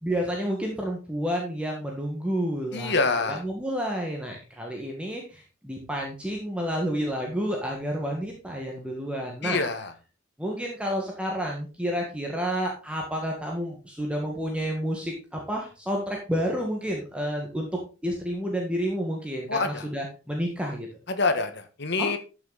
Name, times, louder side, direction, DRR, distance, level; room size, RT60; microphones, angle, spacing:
voice 1, 0.0-2.9 3.2-9.6 10.4-17.7 18.0-20.9 22.0-22.2, equal, 5° right, 0 dB, 1.7 m, -30 dB
voice 2, 2.7-3.4 9.4-9.9 19.5-19.8 21.1-21.5 21.8-22.2, left 3 dB, 60° left, 8 dB, 1.5 m, -25 dB
12.5 x 6.2 x 4.1 m, 0.33 s
head